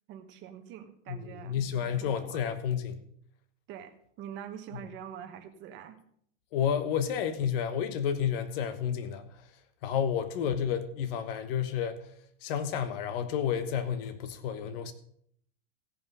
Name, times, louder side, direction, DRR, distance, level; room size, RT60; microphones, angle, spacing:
voice 1, 0.1-2.4 3.7-6.0, right 9 dB, 30° right, 1.2 m, -45 dB
voice 2, 1.1-3.0 6.5-9.3 9.8-12.0 12.4-14.9, left 8 dB, 55° left, 1.2 m, -30 dB
16.5 x 5.6 x 5.5 m
supercardioid pair, 155°, 35 cm